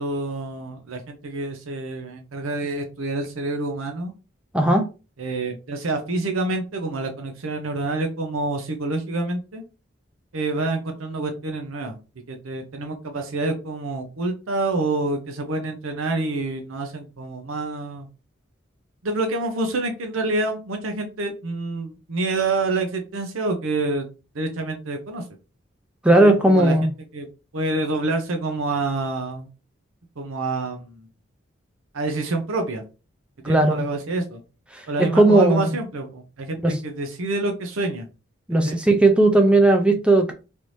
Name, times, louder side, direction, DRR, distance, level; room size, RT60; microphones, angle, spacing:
voice 1, 0.0-4.1 5.2-9.6 10.3-12.0 12.3-18.1 19.0-24.1 24.3-25.2 26.2-27.3 27.5-29.5 30.2-31.1 31.9-32.8 33.4-34.4 34.9-38.1 38.6-38.8, right 2 dB, 90° right, 0.7 m, -27 dB
voice 2, 4.5-4.9 26.0-26.8 33.4-33.8 34.7-34.8 35.1-35.7 36.6-36.7 38.5-40.3, right 2 dB, 5° right, 0.4 m, -16 dB
3.3 x 2.6 x 3.0 m
head